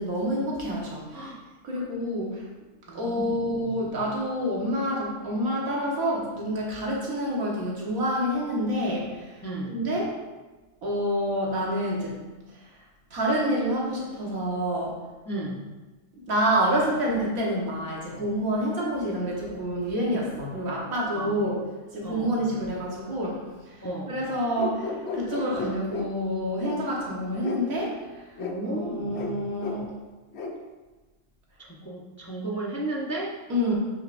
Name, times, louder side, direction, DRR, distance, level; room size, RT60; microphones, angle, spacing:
voice 1, 0.0-1.3 1.6-2.4 2.9-9.4 9.7-10.1 10.8-12.2 13.1-14.9 16.3-21.6 21.9-27.9 28.6-29.9 33.5-33.7, equal, 85° right, -4 dB, 2.0 m, -28 dB
voice 2, 2.9-3.5 9.4-9.8 15.3-15.7 21.1-21.5 22.0-22.4 23.8-24.2 28.4-29.2 31.6-33.3, right 2 dB, 15° left, -3 dB, 0.5 m, -34 dB
sound 1, 24.6-26.1 26.6-26.8 27.4-27.6 28.4-28.6 29.1-29.3 29.6-29.8 30.3-30.5, left 4 dB, 60° left, 0.9 m, -33 dB
7.1 x 6.5 x 2.6 m, 1.2 s
omnidirectional pair, 1.4 m